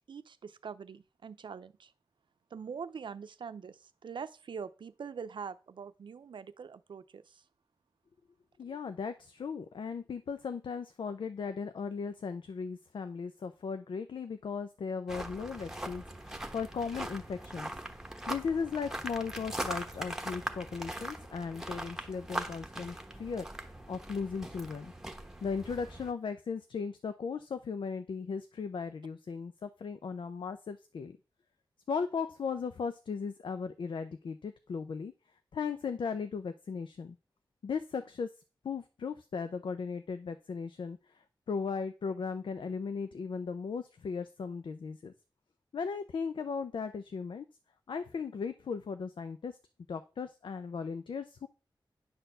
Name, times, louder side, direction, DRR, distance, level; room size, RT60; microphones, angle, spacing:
voice 1, 0.1-1.9 2.5-7.4, right 6 dB, 70° right, 0.6 m, -43 dB
voice 2, 8.6-17.7 18.3-24.9 25.4-31.2 31.9-35.1 35.5-37.2 37.6-38.3 38.6-45.1 45.7-47.4 47.9-49.6 49.9-51.5, left 5 dB, 75° left, 0.6 m, -37 dB
sound 1, 15.1-26.1, right 1 dB, 5° right, 1.0 m, -41 dB
10.5 x 4.3 x 6.7 m
wide cardioid pair, 145°, 8 cm